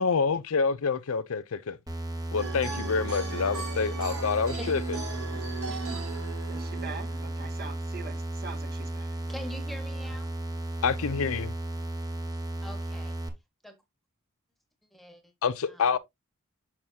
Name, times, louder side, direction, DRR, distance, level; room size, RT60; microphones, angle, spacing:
voice 1, 0.0-1.8 2.3-5.0 10.8-11.5 15.4-16.0, left 5 dB, 70° left, 0.5 m, -27 dB
sound 1, 1.9-13.3, right 1 dB, 20° right, 1.3 m, -34 dB
sound 2, 2.4-7.4, right 4 dB, 85° right, 5.1 m, -38 dB
voice 2, 5.7-6.1 6.5-9.2, right 4 dB, 45° right, 2.0 m, -43 dB
voice 3, 9.3-10.3 12.6-13.1 13.6-13.8 14.9-15.3 15.7-15.9, equal, ahead, 1.6 m, -43 dB
7.2 x 6.2 x 2.8 m
head